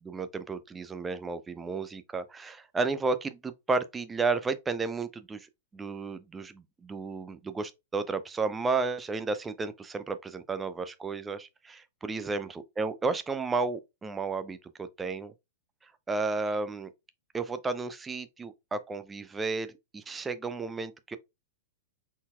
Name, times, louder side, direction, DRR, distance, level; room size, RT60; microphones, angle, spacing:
voice 1, 0.0-5.5 5.7-15.3 16.1-16.9 17.3-21.2, right 4 dB, 15° right, 0.5 m, -32 dB
4.0 x 4.0 x 2.3 m
figure-of-eight pair, 100°, 0 cm